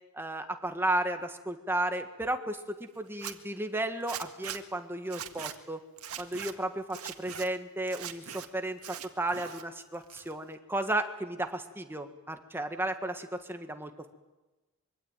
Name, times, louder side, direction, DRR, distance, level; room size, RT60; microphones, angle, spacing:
voice 1, 0.1-5.8 6.2-14.1, right 1 dB, 10° right, 6 dB, 1.7 m, -34 dB
Zipper (clothing), 3.1-3.3 4.1-4.6 5.1-5.5 6.0-6.5 6.9-7.5 7.9-8.5 8.8-9.6 9.9-10.5, right 9 dB, 85° right, 1.8 m, -41 dB
24.5 x 23.5 x 9.1 m, 1.1 s
head